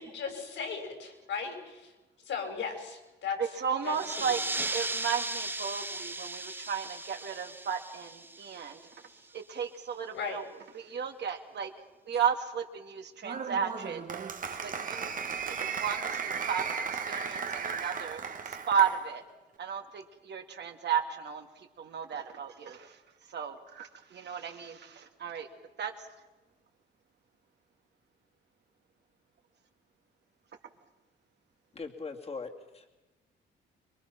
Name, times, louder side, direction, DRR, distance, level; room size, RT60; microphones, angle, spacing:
voice 1, 0.0-1.9 2.2-3.6 3.8-4.3 6.5-6.6 10.1-10.4, left 6 dB, 75° left, 3 dB, 6.0 m, -37 dB
voice 2, 3.4-4.4 4.7-8.8 9.3-10.4 10.7-11.7 12.1-14.1 14.6-19.2 19.6-23.0 23.3-25.5 25.8-25.9, right 7 dB, 60° right, 4 dB, 2.3 m, -34 dB
sound 1, 3.8-9.1, right 2 dB, 10° right, 0.9 m, -37 dB
Applause, 13.2-19.0, right 6 dB, 45° right, 1.6 m, -35 dB
voice 3, 31.7-32.9, left 4 dB, 30° left, 2 dB, 2.5 m, -40 dB
25.5 x 22.0 x 6.0 m, 1.1 s
cardioid pair, 90°, 20 cm